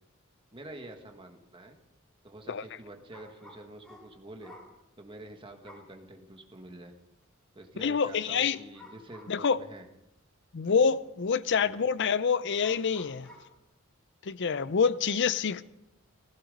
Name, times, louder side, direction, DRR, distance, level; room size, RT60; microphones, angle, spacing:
voice 1, 0.5-1.8 2.2-4.5 5.0-6.9 7.5-9.9 11.6-11.8, right 1 dB, 25° right, 1.5 m, -47 dB
sound 1, 3.1-4.8 5.6-6.0 6.5-6.6 8.5-9.5 10.1-10.2 11.9-12.0 12.6-13.6, left 1 dB, ahead, 3.1 m, -53 dB
voice 2, 7.8-8.6 9.3-9.6 10.5-13.3 14.2-15.7, left 6 dB, 55° left, 0.6 m, -27 dB
16.0 x 15.5 x 5.3 m
head